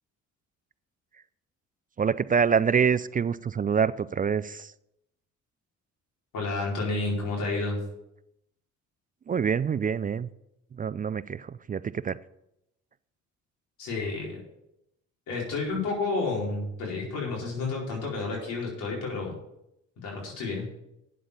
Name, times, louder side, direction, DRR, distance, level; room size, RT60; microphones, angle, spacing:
voice 1, 2.0-4.7 9.3-10.3 10.7-12.2, right 6 dB, 30° right, 16 dB, 0.4 m, -26 dB
voice 2, 6.3-7.8 13.8-14.4 15.3-19.4 20.0-20.7, left 3 dB, 90° left, -3 dB, 4.6 m, -30 dB
8.9 x 7.6 x 6.9 m, 0.83 s
cardioid pair, 90°, 30 cm